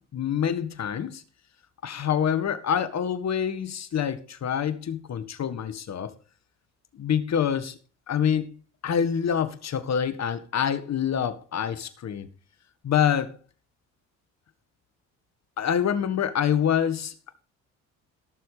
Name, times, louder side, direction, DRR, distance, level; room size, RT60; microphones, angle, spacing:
voice 1, 0.1-1.2 1.8-6.1 6.9-7.8 8.1-8.5 8.8-12.3 12.8-13.3 15.6-17.1, left 8 dB, 50° left, 1.8 m, -26 dB
16.5 x 7.0 x 5.1 m
supercardioid pair, 75°, 35 cm